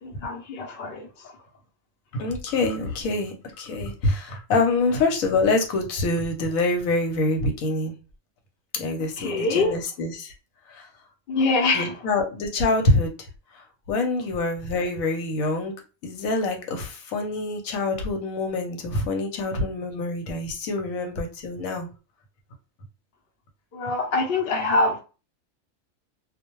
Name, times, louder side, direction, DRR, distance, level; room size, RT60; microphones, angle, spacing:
voice 1, 0.0-1.4 9.2-9.7 11.3-12.1 23.7-25.0, left 3 dB, 50° left, 0.8 m, -24 dB
voice 2, 2.1-7.9 8.7-10.3 10.7-10.9 11.7-13.1 13.5-15.7 16.0-21.9, left 2 dB, 80° left, 1.1 m, -25 dB
2.3 x 2.1 x 3.0 m
omnidirectional pair, 1.4 m